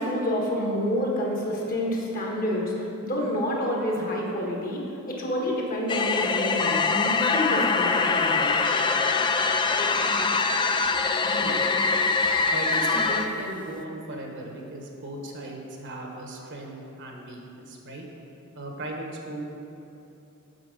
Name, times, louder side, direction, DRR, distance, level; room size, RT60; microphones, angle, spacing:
voice 1, 0.0-4.8 5.1-8.7, equal, 40° left, -2 dB, 1.4 m, -28 dB
sound 1, 5.9-13.3, left 4 dB, 20° left, 0.3 m, -23 dB
voice 2, 12.5-18.0 18.5-19.4, right 2 dB, 60° right, 1 dB, 1.2 m, -37 dB
7.9 x 5.9 x 5.1 m, 2.9 s
head